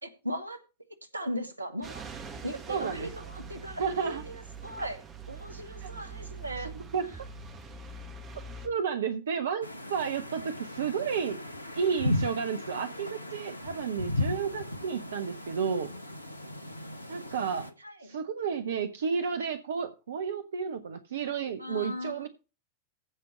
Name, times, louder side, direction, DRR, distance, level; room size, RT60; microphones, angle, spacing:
voice 1, 0.0-0.6 1.1-2.0 2.4-4.2 4.6-5.0 5.3-6.7 21.6-22.3, equal, 80° right, 1.2 m, -37 dB
sound 1, 1.8-8.7, right 4 dB, 30° right, 2.0 m, -44 dB
voice 2, 2.7-3.1 3.8-4.2 5.8-5.9 6.6-7.1 8.6-11.4 11.7-15.9 17.1-17.7 18.0-22.3, right 6 dB, 65° right, 0.8 m, -32 dB
sound 2, 9.6-17.7, left 1 dB, 85° left, 0.9 m, -36 dB
15.5 x 5.2 x 4.4 m
figure-of-eight pair, 90°, 0 cm